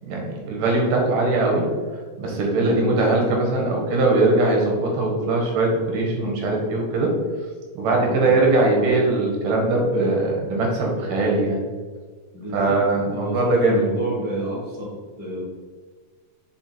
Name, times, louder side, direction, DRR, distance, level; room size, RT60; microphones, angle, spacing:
voice 1, 0.0-1.7 2.2-7.2 7.7-11.6 12.5-13.8, right 2 dB, 85° right, -1 dB, 3.0 m, -21 dB
voice 2, 2.5-2.9 7.9-8.3 12.3-15.4, right 1 dB, 20° left, -7 dB, 0.9 m, -30 dB
6.6 x 4.3 x 4.4 m, 1.5 s
omnidirectional pair, 3.7 m